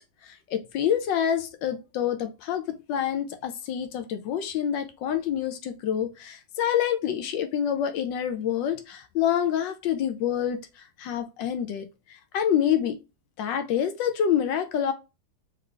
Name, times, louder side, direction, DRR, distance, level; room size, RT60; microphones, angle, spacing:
voice 1, 0.2-13.0 13.4-14.9, left 9 dB, 75° left, 8 dB, 1.3 m, -27 dB
3.8 x 3.2 x 3.3 m, 0.27 s
omnidirectional pair, 2.0 m